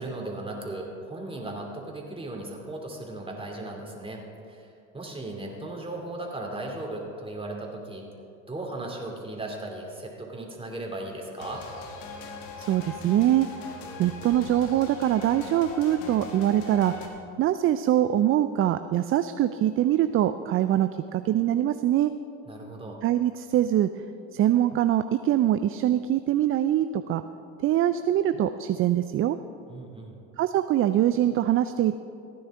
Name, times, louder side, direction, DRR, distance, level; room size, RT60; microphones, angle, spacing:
voice 1, 0.0-8.0 8.5-11.6 22.5-23.0 29.7-30.2, right 2 dB, 15° right, 0 dB, 2.7 m, -37 dB
sound 1, 11.4-17.1, left 2 dB, 75° left, 1.7 m, -40 dB
voice 2, 12.6-13.6 14.0-16.9 17.4-22.1 23.0-23.9 24.3-27.2 27.6-29.4 30.4-32.0, right 12 dB, 35° right, 11 dB, 0.4 m, -23 dB
15.5 x 10.0 x 3.7 m, 2.5 s
hypercardioid pair, 75°, 39 cm